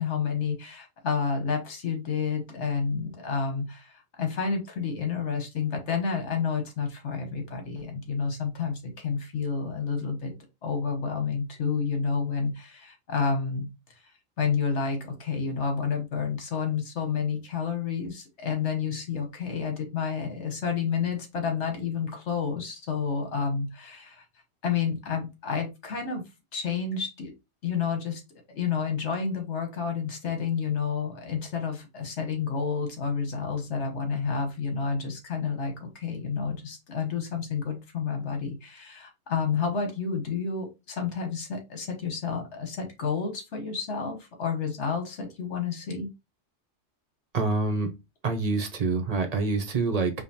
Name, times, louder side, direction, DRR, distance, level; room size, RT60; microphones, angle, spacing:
voice 1, 0.0-10.3 10.6-13.7 14.4-24.2 24.6-26.2 26.5-27.3 27.6-28.2 28.5-46.1, left 6 dB, 75° left, 4 dB, 1.3 m, -30 dB
voice 2, 47.3-47.9 48.2-50.1, right 3 dB, 45° right, 6 dB, 0.6 m, -26 dB
5.0 x 2.1 x 2.7 m, 0.24 s
omnidirectional pair, 1.2 m